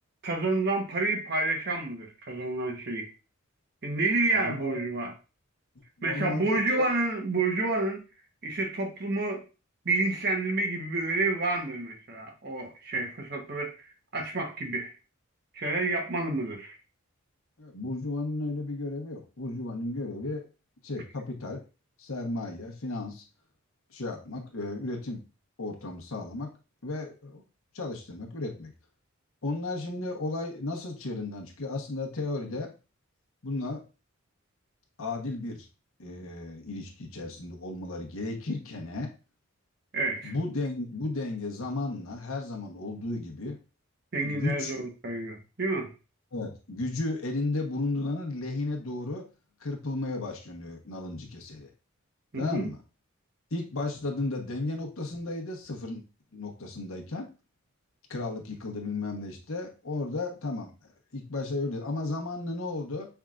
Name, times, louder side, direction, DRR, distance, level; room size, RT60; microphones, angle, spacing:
voice 1, 0.2-3.1 3.8-5.1 6.0-8.0 8.4-9.4 9.8-13.8 14.1-14.9 15.5-16.8 39.9-40.3 44.1-45.9 52.3-52.7, right 2 dB, 50° right, 1.1 m, -29 dB
voice 2, 4.3-4.8 6.0-6.9 17.6-20.4 20.8-21.6 22.0-23.2 23.9-25.2 25.6-26.5 26.8-27.4 27.7-28.7 29.4-32.7 33.4-33.8 35.0-35.7 36.0-39.1 40.2-43.6 44.2-44.7 46.3-49.3 49.6-51.7 52.4-52.8 53.5-56.0 56.3-57.3 58.1-60.7 61.1-63.1, left 2 dB, 75° left, 1.1 m, -34 dB
5.7 x 3.5 x 2.4 m
head